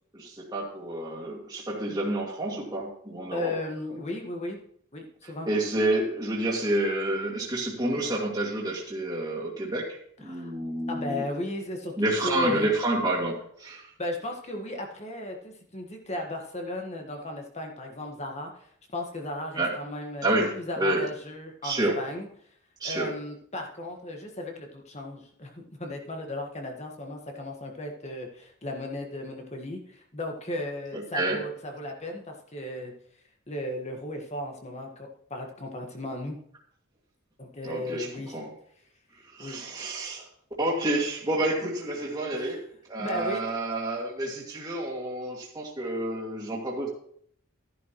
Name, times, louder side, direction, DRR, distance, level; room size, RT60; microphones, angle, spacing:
voice 1, 0.1-3.5 5.5-11.2 12.0-13.9 19.5-19.8 20.2-21.0 21.6-22.0 22.8-23.1 30.9-31.4 37.6-38.5 39.3-40.2 40.6-42.6 42.9-46.9, right 1 dB, 20° right, -4 dB, 2.4 m, -29 dB
voice 2, 3.3-4.6 4.9-5.5 10.2-10.5 10.9-12.7 14.0-18.5 18.9-22.3 22.8-32.9 33.5-36.4 37.4-38.4 39.4-39.6 42.3-42.6 43.0-43.4, left 1 dB, 30° left, 2 dB, 1.6 m, -35 dB
13.5 x 10.5 x 3.1 m, 0.65 s
head